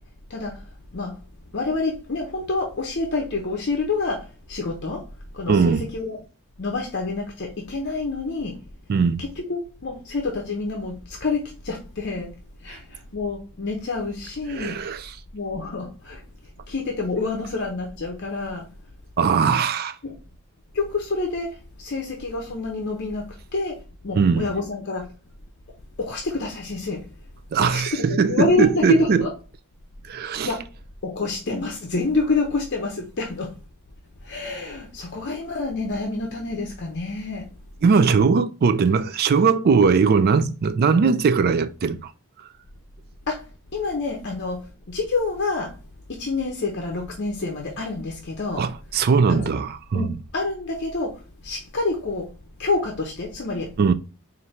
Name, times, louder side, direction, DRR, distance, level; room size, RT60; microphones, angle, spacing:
voice 1, 0.3-1.2 1.5-5.0 5.3-6.2 6.6-8.6 9.2-12.3 12.6-14.8 15.3-16.2 16.7-18.7 19.2-19.3 20.0-20.2 20.7-25.1 26.0-27.1 27.6-29.3 30.4-30.7 31.0-33.5 34.2-37.5 43.3-45.7 46.1-48.6 49.3-49.5 49.9-52.3 52.6-53.9, left 3 dB, 50° left, 0.7 m, -28 dB
voice 2, 5.5-5.8 8.9-9.2 14.5-15.0 19.2-20.0 24.1-24.5 27.5-29.3 30.1-30.5 37.8-42.1 48.6-50.0 53.8-53.9, right 5 dB, 45° right, 0.3 m, -20 dB
4.2 x 2.6 x 3.1 m
head